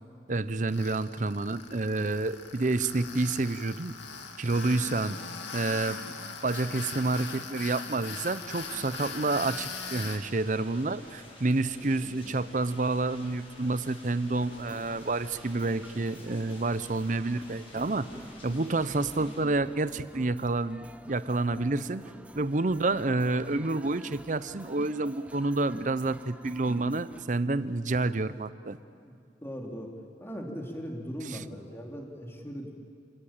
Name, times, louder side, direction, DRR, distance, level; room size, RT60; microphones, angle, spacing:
voice 1, 0.3-3.9 4.4-5.2 5.5-6.0 6.4-18.1 18.4-22.0 22.3-28.8 31.3-31.4, right 2 dB, 45° right, 15 dB, 0.7 m, -29 dB
Tools, 0.7-10.2, left 5 dB, 85° left, 2.4 m, -40 dB
sound 1, 8.4-19.4, left 1 dB, 30° left, 7.4 m, -50 dB
sound 2, 14.5-27.2, right 1 dB, 5° right, 0.6 m, -48 dB
voice 2, 29.4-29.9 30.2-32.7, equal, 15° left, 0 dB, 3.0 m, -39 dB
29.5 x 18.0 x 8.9 m, 2.4 s
head